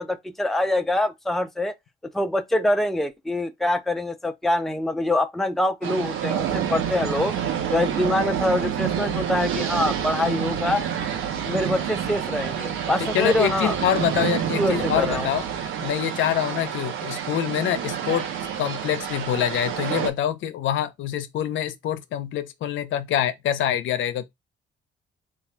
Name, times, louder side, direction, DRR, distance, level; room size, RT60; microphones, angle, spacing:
voice 1, 0.0-1.7 2.1-7.3 7.7-10.8 11.5-13.7 14.6-15.3, left 1 dB, ahead, 0.5 m, -24 dB
sound 1, 5.8-20.1, right 9 dB, 90° right, 0.8 m, -28 dB
voice 2, 13.0-18.3 18.6-24.2, left 10 dB, 75° left, 0.6 m, -25 dB
3.5 x 2.4 x 4.3 m
cardioid pair, 90°, 20 cm